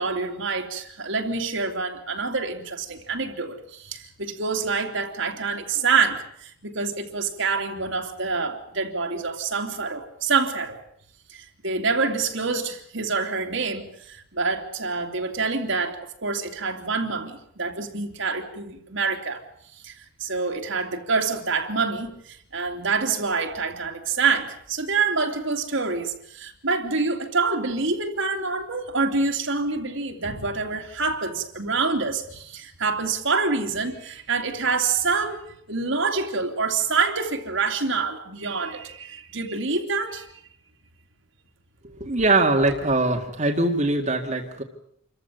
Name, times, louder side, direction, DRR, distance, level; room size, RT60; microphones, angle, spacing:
voice 1, 0.0-10.8 11.3-19.4 19.8-40.3, right 4 dB, 65° right, 2.9 m, -26 dB
voice 2, 41.8-44.6, right 2 dB, 35° right, 2.1 m, -22 dB
27.5 x 15.0 x 9.4 m
head